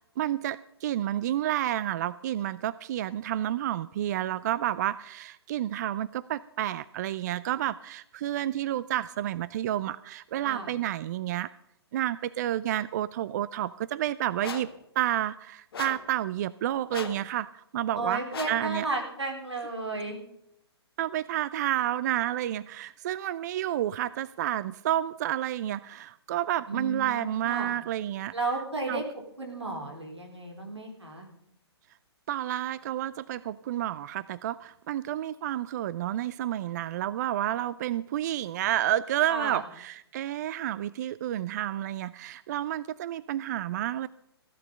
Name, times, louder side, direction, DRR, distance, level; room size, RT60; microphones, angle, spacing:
voice 1, 0.0-11.5 11.9-14.7 15.0-18.9 21.0-28.3 28.9-29.0 32.3-44.1, right 12 dB, 40° right, 18 dB, 0.4 m, -30 dB
voice 2, 10.4-10.7 18.0-20.2 26.7-27.7 28.3-29.0 29.4-31.3 39.3-39.6, right 2 dB, 90° right, 1 dB, 4.1 m, -33 dB
sound 1, 14.4-14.8 15.7-16.1 16.9-17.3 18.3-18.7, left 7 dB, 60° left, 1.3 m, -38 dB
15.5 x 11.5 x 5.3 m, 0.78 s
figure-of-eight pair, 130°, 14 cm